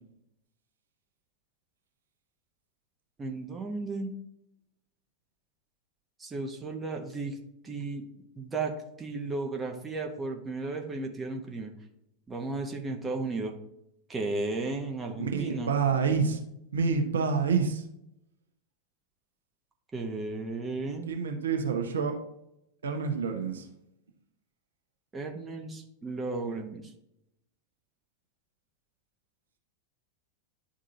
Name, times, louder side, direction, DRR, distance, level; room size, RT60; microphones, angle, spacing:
voice 1, 3.2-4.1 6.2-7.4 7.6-8.1 8.4-8.7 9.0-11.7 12.3-13.5 14.1-15.7 19.9-21.1 25.1-26.8, right 3 dB, 15° right, 2 dB, 1.0 m, -34 dB
voice 2, 15.2-16.4 16.7-17.8 21.1-22.1 22.8-23.7, right 5 dB, 65° right, 3 dB, 0.8 m, -27 dB
11.0 x 3.7 x 2.8 m, 0.82 s
figure-of-eight pair, 90°, 0 cm